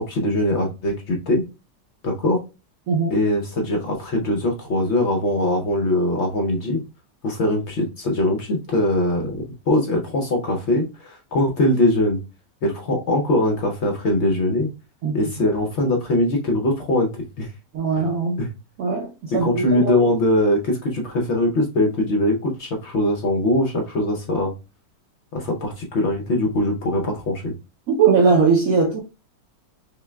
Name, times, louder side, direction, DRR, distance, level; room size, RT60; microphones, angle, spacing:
voice 1, 0.0-1.5 2.0-2.4 3.1-6.8 7.2-12.2 12.6-14.7 15.1-17.1 17.4-17.5 18.0-18.1 18.4-18.5 19.3-24.5 25.3-27.5, left 1 dB, 65° left, 0.7 m, -21 dB
voice 2, 17.7-18.4 18.8-20.1 27.9-29.0, right 5 dB, 65° right, 0.9 m, -20 dB
5.5 x 2.2 x 2.2 m
omnidirectional pair, 1.9 m